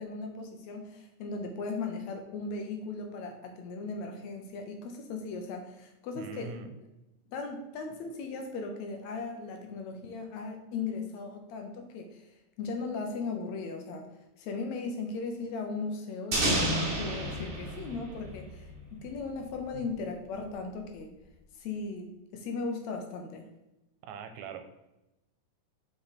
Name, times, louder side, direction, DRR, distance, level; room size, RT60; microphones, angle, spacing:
voice 1, 0.0-6.6 7.3-12.3 12.6-14.1 14.4-21.1 21.6-23.5, left 4 dB, 70° left, 4 dB, 1.9 m, -37 dB
voice 2, 6.2-6.7 19.7-19.9 24.0-24.6, right 5 dB, 80° right, 7 dB, 1.9 m, -42 dB
sound 1, 16.3-19.1, right 1 dB, 55° right, 0.7 m, -30 dB
5.6 x 5.2 x 4.1 m, 0.94 s
omnidirectional pair, 3.6 m